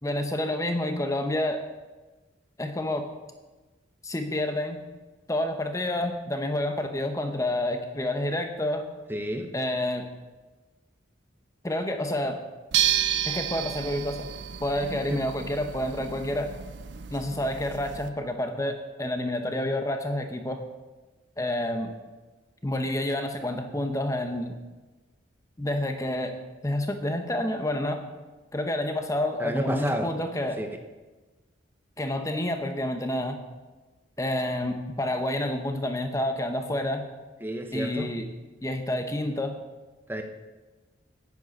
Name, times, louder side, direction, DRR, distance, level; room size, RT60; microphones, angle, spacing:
voice 1, 0.0-1.6 2.6-3.1 4.0-4.8 5.3-8.8 9.5-10.0 11.6-12.4 13.2-14.3 14.6-16.5 17.1-20.6 21.4-21.9 22.6-24.6 25.6-26.3 26.6-28.0 28.5-30.6 32.0-33.4 34.2-37.1 37.7-38.2 38.6-39.6, left 1 dB, 15° left, 6 dB, 0.9 m, -29 dB
voice 2, 9.1-9.5 15.1-15.2 29.4-30.1 30.6-30.7 37.4-38.1 40.1-40.2, equal, 10° right, 5 dB, 0.8 m, -30 dB
sound 1, 12.7-18.1, right 10 dB, 65° right, 0.6 m, -31 dB
9.2 x 9.1 x 5.3 m, 1.2 s
head